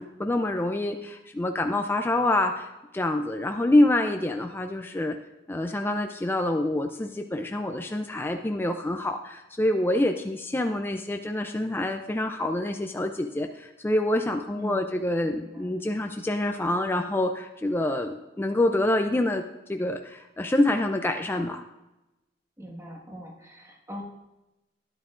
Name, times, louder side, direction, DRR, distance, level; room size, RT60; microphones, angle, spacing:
voice 1, 0.0-2.7 2.9-5.2 5.5-19.4 19.7-21.6, left 1 dB, 10° left, 5 dB, 0.4 m, -26 dB
voice 2, 14.6-14.9 15.3-15.8 22.6-24.0, equal, 15° right, -2 dB, 1.5 m, -42 dB
12.5 x 11.0 x 2.5 m, 1.0 s
head